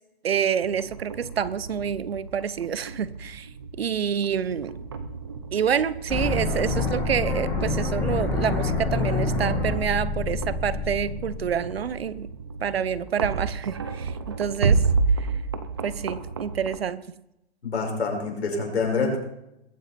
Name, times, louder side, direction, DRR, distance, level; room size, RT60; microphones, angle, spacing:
voice 1, 0.2-3.5 3.8-4.8 5.5-12.3 12.6-14.8 15.2-15.3 15.8-17.0, right 8 dB, 70° right, 0.9 m, -27 dB
sound 1, 0.6-16.8, right 4 dB, 25° right, 0.6 m, -31 dB
sound 2, 6.1-12.1, left 3 dB, 5° left, 1.9 m, -27 dB
voice 2, 17.6-19.2, left 4 dB, 85° left, 6.5 m, -26 dB
21.5 x 8.6 x 4.3 m
hypercardioid pair, 175°, 32 cm